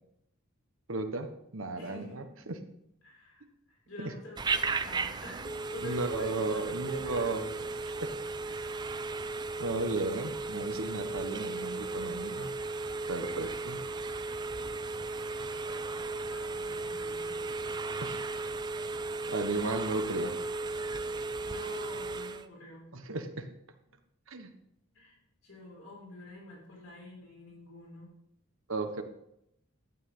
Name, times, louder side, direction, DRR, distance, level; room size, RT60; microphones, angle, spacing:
voice 1, 0.9-2.6 4.0-4.1 5.8-7.6 8.0-8.1 9.6-12.5 13.1-13.8 18.0-18.2 19.3-20.4 22.9-23.5 24.3-24.5 28.7-29.0, right 2 dB, 75° right, 6 dB, 1.2 m, -34 dB
voice 2, 1.8-2.2 3.0-7.7 8.4-8.8 13.8-14.3 15.2-17.8 21.4-23.2 24.9-25.2 25.4-28.1, left 1 dB, 80° left, -2 dB, 5.1 m, -49 dB
Telephone, 4.4-22.5, right 3 dB, 20° right, 0.5 m, -35 dB
12.0 x 8.9 x 3.8 m, 0.77 s
head